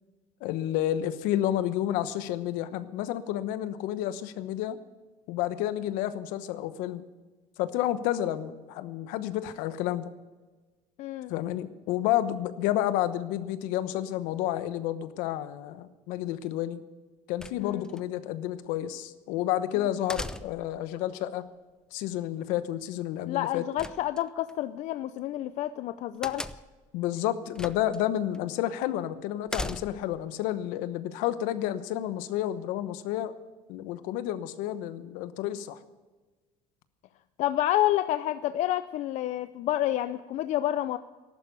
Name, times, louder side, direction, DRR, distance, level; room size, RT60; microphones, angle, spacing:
voice 1, 0.4-4.8 5.3-7.0 7.6-10.1 11.3-16.8 17.3-21.4 21.9-23.6 26.9-33.3 33.7-35.8, left 12 dB, 80° left, 12 dB, 1.0 m, -30 dB
voice 2, 11.0-11.3 17.6-17.9 23.3-26.5 37.4-41.0, left 13 dB, 60° left, 12 dB, 0.5 m, -29 dB
sound 1, 17.4-18.0 20.1-20.8 23.8-24.5 26.2-26.8 27.6-28.0 28.3-28.4 29.5-30.2, left 1 dB, 5° left, 0.6 m, -37 dB
14.0 x 12.0 x 6.8 m, 1.3 s
supercardioid pair, 105°, 14 cm